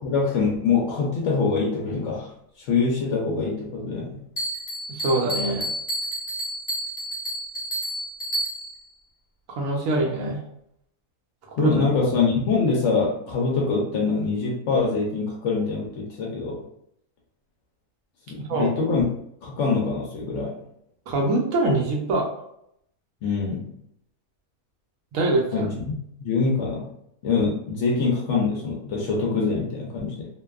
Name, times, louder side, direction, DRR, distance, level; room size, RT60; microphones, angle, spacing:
voice 1, 0.0-2.3 2.6-4.2 11.6-16.6 18.3-19.1 19.4-20.5 23.2-23.7 25.5-25.8 26.2-26.9 27.2-30.3, left 4 dB, 65° left, -1 dB, 0.8 m, -24 dB
Bell, 4.4-8.9, right 1 dB, 35° left, 0.9 m, -30 dB
voice 2, 4.9-5.7 9.5-10.4 11.5-11.9 18.5-18.7 21.1-22.4 25.1-25.7, right 2 dB, 70° right, 0 dB, 1.0 m, -24 dB
2.6 x 2.2 x 2.3 m, 0.74 s
omnidirectional pair, 1.5 m